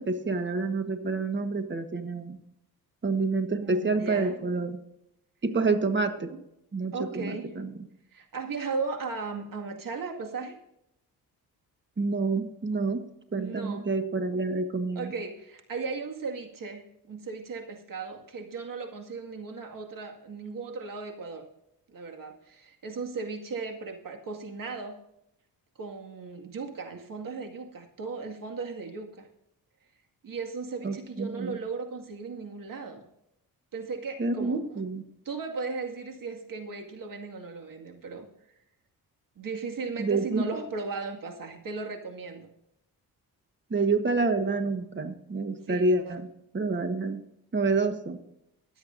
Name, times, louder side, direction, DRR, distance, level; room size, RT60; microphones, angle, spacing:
voice 1, 0.0-2.4 3.0-4.8 5.4-6.3 6.7-7.7 12.0-13.0 13.3-15.1 30.8-31.6 34.2-35.0 40.0-40.7 43.7-46.2 46.5-47.2 47.5-48.2, right 3 dB, 30° right, 8 dB, 1.4 m, -28 dB
voice 2, 3.6-4.3 6.9-7.5 8.1-10.5 13.4-13.9 15.0-21.5 21.9-25.0 25.8-29.3 30.2-33.0 33.7-34.6 35.3-38.3 39.4-42.5 45.7-46.2, right 4 dB, 55° right, 3 dB, 2.1 m, -36 dB
23.0 x 8.0 x 2.6 m, 0.80 s
cardioid pair, 75°, 39 cm